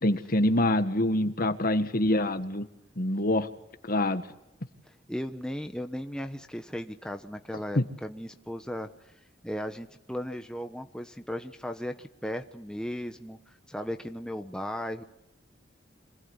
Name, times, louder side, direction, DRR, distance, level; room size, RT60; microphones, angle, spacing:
voice 1, 0.0-2.7 3.0-3.5 3.8-4.2 7.8-7.9, left 1 dB, 50° left, 9 dB, 1.7 m, -25 dB
voice 2, 5.1-8.9 9.4-15.0, equal, 5° left, 6 dB, 1.1 m, -36 dB
26.5 x 19.5 x 9.7 m, 0.87 s
head